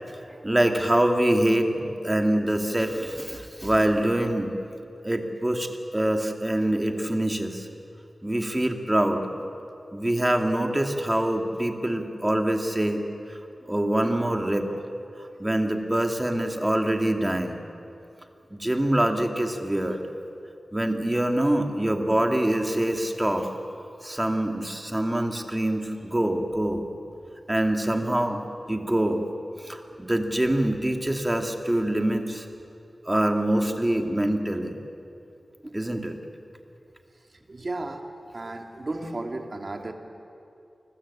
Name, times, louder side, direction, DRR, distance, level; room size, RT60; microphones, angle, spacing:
voice 1, 0.4-4.5 5.0-7.7 8.2-9.5 9.9-13.0 13.3-13.4 13.6-14.7 15.4-17.6 18.5-20.0 20.7-23.5 24.0-26.9 27.5-28.4 28.7-29.2 29.6-32.5 33.0-34.8 35.6-36.1, right 1 dB, 15° right, 4 dB, 2.6 m, -25 dB
voice 2, 37.5-38.0 38.3-39.9, right 2 dB, 45° right, 4 dB, 2.7 m, -34 dB
28.5 x 21.5 x 8.7 m, 2.6 s
wide cardioid pair, 90°, 0 cm